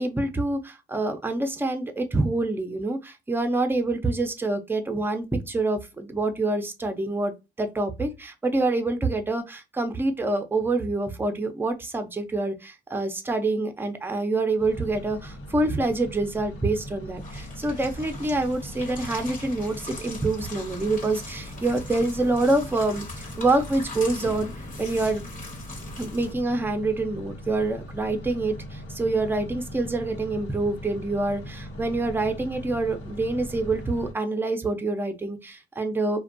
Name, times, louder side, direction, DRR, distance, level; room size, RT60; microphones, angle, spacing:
voice 1, 0.0-7.3 7.6-24.5 24.8-25.2 26.0-36.2, right 2 dB, 10° right, 0.5 m, -26 dB
sound 1, 14.6-34.1, equal, 80° left, 1.0 m, -40 dB
sound 2, 17.2-26.3, left 2 dB, 40° left, 0.9 m, -40 dB
2.5 x 2.2 x 2.5 m
cardioid pair, 90°, 20 cm